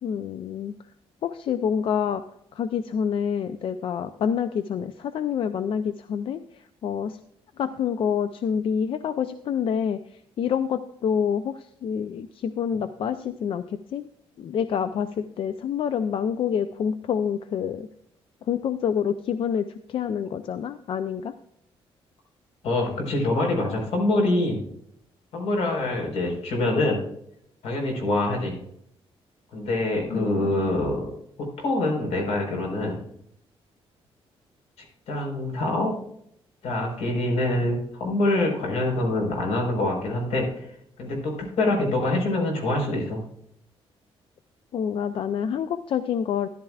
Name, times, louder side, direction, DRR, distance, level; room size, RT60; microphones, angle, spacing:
voice 1, 0.0-0.7 1.2-2.2 2.5-7.2 7.6-14.1 14.4-17.9 18.5-21.3 30.1-30.6 44.7-46.5, left 7 dB, 60° left, 11 dB, 0.5 m, -27 dB
voice 2, 22.6-24.7 25.3-27.0 27.6-28.6 29.5-31.1 31.4-33.0 35.1-35.9 36.6-40.7 41.0-43.2, left 2 dB, 85° left, 2 dB, 4.4 m, -25 dB
13.5 x 11.0 x 2.4 m, 0.72 s
cardioid pair, 135°, 10 cm